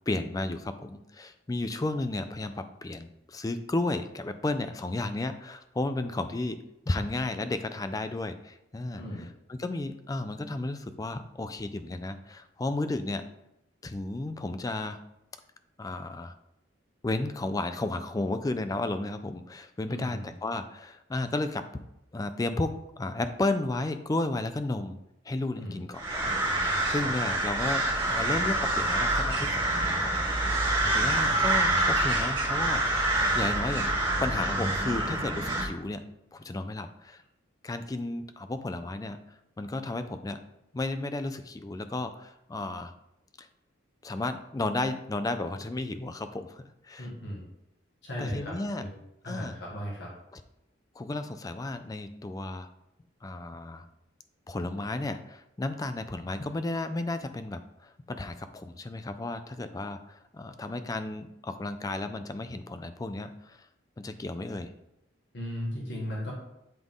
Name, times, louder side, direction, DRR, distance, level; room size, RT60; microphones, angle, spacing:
voice 1, 0.1-6.6 6.9-9.0 9.5-13.2 13.8-15.0 15.8-16.3 17.0-21.6 22.1-25.0 25.3-33.9 34.2-36.0 36.3-37.2 37.6-39.2 39.6-40.4 40.7-42.9 43.4-43.5 44.0-47.1 48.2-48.8 49.2-49.6 50.3-50.4 51.0-52.7 53.2-53.8 54.5-63.7 64.0-64.7, left 2 dB, 20° left, 10 dB, 0.3 m, -33 dB
voice 2, 19.9-20.3 25.6-25.8 27.0-27.1 30.8-31.5 47.0-47.4 48.0-48.9 49.2-50.1 65.3-66.3, equal, 60° left, -4 dB, 1.5 m, -37 dB
sound 1, 25.9-35.6, right 1 dB, 25° right, 2.1 m, -26 dB
8.0 x 3.6 x 3.6 m, 0.85 s
head